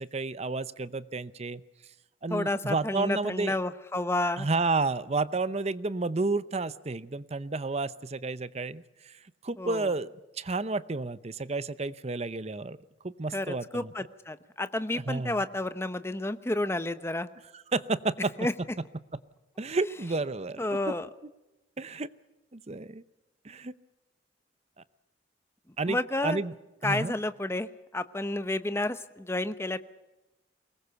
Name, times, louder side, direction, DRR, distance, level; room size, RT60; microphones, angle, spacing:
voice 1, 0.0-1.6 2.2-3.6 4.4-10.1 10.4-12.8 13.0-13.9 14.9-15.4 17.5-18.3 19.6-20.7 21.8-22.1 22.5-23.0 23.4-23.7 25.8-26.0 26.2-26.5 26.8-27.1, right 3 dB, 35° right, 15 dB, 0.7 m, -31 dB
voice 2, 2.3-4.5 9.6-9.9 13.3-17.3 18.4-18.5 20.6-21.1 25.9-26.4 26.8-27.7 27.9-29.8, left 2 dB, 15° left, 11 dB, 0.9 m, -30 dB
23.0 x 20.0 x 6.9 m, 1.0 s
head